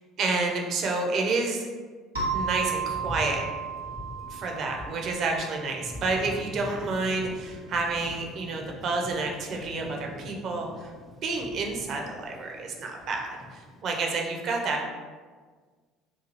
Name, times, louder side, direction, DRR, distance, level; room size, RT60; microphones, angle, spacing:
voice 1, 0.2-1.7 2.3-3.4 4.3-10.9 11.2-13.4 13.8-14.9, right 3 dB, 45° right, 1 dB, 0.4 m, -29 dB
sound 1, 2.1-6.5, right 6 dB, 80° right, 0.7 m, -34 dB
Thunder, 2.2-13.8, left 1 dB, 20° left, 0.4 m, -43 dB
2.8 x 2.4 x 2.6 m, 1.5 s
figure-of-eight pair, 60°, 0 cm